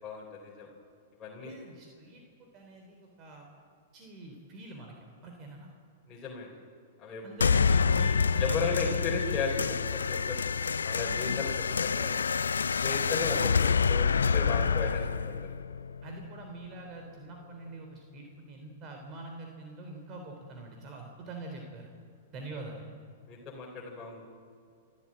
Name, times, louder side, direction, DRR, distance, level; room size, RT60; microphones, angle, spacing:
voice 1, 0.0-0.7 1.2-1.5 6.1-6.5 7.0-7.2 8.4-10.4 10.8-11.5 11.8-12.2 12.8-15.5 23.3-24.2, left 4 dB, 25° left, -4 dB, 4.1 m, -35 dB
voice 2, 1.4-3.5 3.9-4.9 5.2-5.7 7.2-9.0 16.0-21.9 22.3-22.9, right 2 dB, 35° right, 2 dB, 3.6 m, -45 dB
sound 1, 7.4-16.4, left 5 dB, 90° left, 0.4 m, -27 dB
27.5 x 13.0 x 8.8 m, 2.3 s
hypercardioid pair, 115°, 0 cm